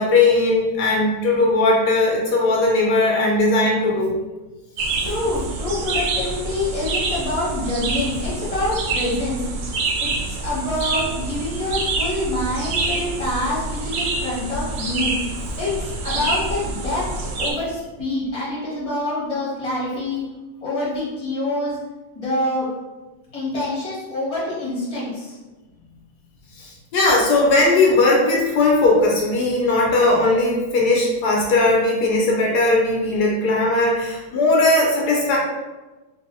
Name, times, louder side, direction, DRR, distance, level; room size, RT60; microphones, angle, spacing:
voice 1, 0.0-4.2 26.6-35.4, left 2 dB, 80° left, -2 dB, 1.2 m, -18 dB
sound 1, 4.8-17.5, right 3 dB, 85° right, 1.2 m, -26 dB
voice 2, 5.0-9.4 10.0-15.1 15.6-17.0 17.4-20.2 20.6-21.8 22.1-22.7 23.3-25.3, left 1 dB, 20° left, -7 dB, 1.4 m, -26 dB
4.0 x 3.0 x 2.6 m, 1.2 s
omnidirectional pair, 1.7 m